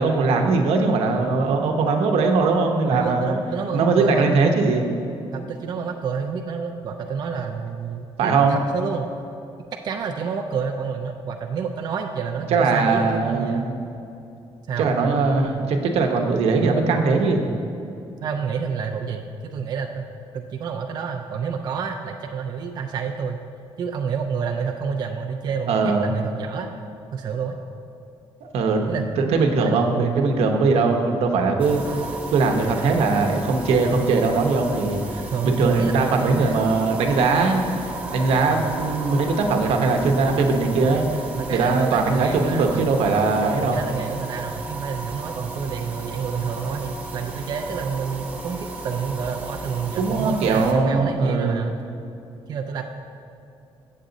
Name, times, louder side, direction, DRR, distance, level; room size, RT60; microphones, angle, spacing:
voice 1, 0.0-3.3 3.7-4.9 8.2-8.6 12.5-13.8 14.8-17.5 25.7-26.1 28.4-31.8 32.3-41.2 41.5-43.8 50.0-51.7, right 4 dB, 85° right, 3 dB, 0.9 m, -20 dB
voice 2, 2.9-4.6 5.3-9.1 9.8-13.6 14.7-14.9 18.2-23.4 23.8-26.7 27.1-27.6 28.9-30.3 35.3-36.7 38.5-39.2 40.8-41.1 41.3-42.9 43.7-51.7 52.5-52.8, right 6 dB, 40° right, 2 dB, 0.4 m, -29 dB
sound 1, 31.6-50.7, right 2 dB, 15° right, 0.8 m, -35 dB
8.1 x 7.4 x 3.9 m, 2.7 s
cardioid pair, 175°, 10 cm